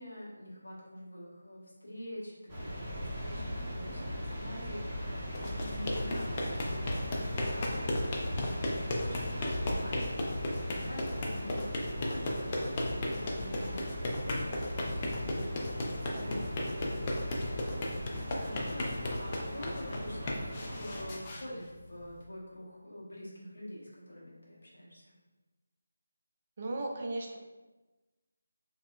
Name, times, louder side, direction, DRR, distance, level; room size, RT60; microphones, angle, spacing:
voice 1, 0.0-10.4 10.8-15.5 15.8-20.4 20.7-25.1, equal, 70° left, -5 dB, 1.2 m, -46 dB
sound 1, 2.5-21.1, equal, 10° right, 1.0 m, -38 dB
sound 2, 5.2-22.2, left 1 dB, 25° left, 0.5 m, -36 dB
voice 2, 16.1-16.5 26.6-27.4, right 2 dB, 35° right, 0 dB, 0.5 m, -37 dB
4.2 x 2.8 x 2.4 m, 1.2 s
figure-of-eight pair, 160°, 0 cm